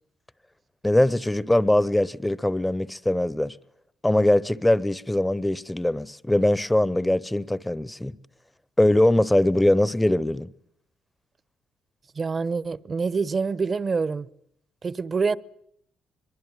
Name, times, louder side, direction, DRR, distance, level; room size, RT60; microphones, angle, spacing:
voice 1, 0.8-3.5 4.0-8.1 8.8-10.5, left 1 dB, 10° left, 1.0 m, -22 dB
voice 2, 12.2-14.3 14.8-15.4, right 4 dB, 35° right, 1.0 m, -26 dB
23.5 x 23.0 x 9.2 m
cardioid pair, 90°, 0 cm